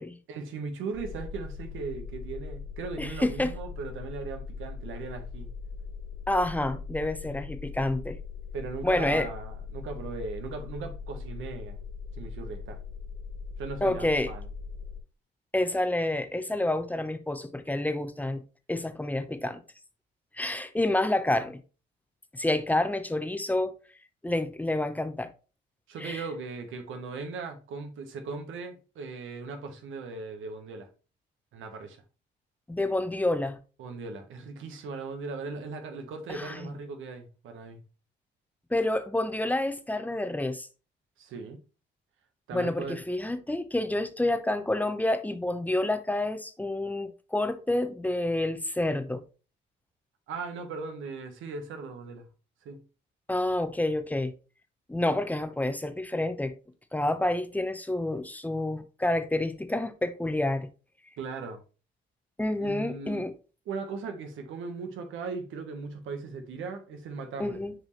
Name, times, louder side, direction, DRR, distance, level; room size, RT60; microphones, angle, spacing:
voice 1, 0.3-5.5 8.5-11.8 12.2-12.8 13.6-14.5 25.9-30.9 31.5-32.0 33.8-37.8 41.2-41.6 42.5-43.0 50.3-52.3 52.6-52.8 61.2-61.6 62.6-63.3 63.7-67.6, right 4 dB, 85° right, 1.4 m, -38 dB
sound 1, 0.9-15.0, left 5 dB, 85° left, 2.2 m, -40 dB
voice 2, 3.0-3.5 6.3-8.2 8.8-9.3 13.8-14.3 15.5-18.4 18.7-19.6 20.3-21.6 22.3-23.8 24.2-25.3 26.0-26.2 32.7-33.6 36.3-36.7 38.7-40.7 42.5-49.2 53.3-54.3 54.9-56.6 56.9-60.7 62.4-63.3 67.4-67.7, left 1 dB, 10° left, 0.8 m, -28 dB
6.5 x 4.8 x 3.2 m
cardioid pair, 90°, 20 cm